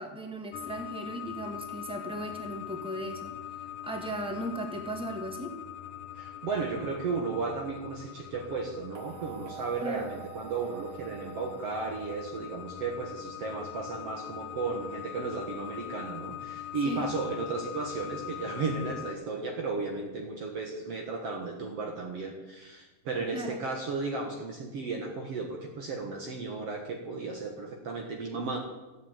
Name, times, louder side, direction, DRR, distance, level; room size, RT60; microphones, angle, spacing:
voice 1, 0.0-3.4 3.8-5.6 9.8-10.1 16.8-17.1 23.3-23.6, right 1 dB, 5° right, 3 dB, 0.8 m, -37 dB
sound 1, 0.5-19.2, left 11 dB, 80° left, 2.3 m, -42 dB
voice 2, 6.2-28.6, right 4 dB, 55° right, 1 dB, 2.3 m, -34 dB
sound 2, 9.0-13.2, right 8 dB, 80° right, 2.3 m, -47 dB
13.5 x 8.6 x 8.9 m, 1.1 s
omnidirectional pair, 3.8 m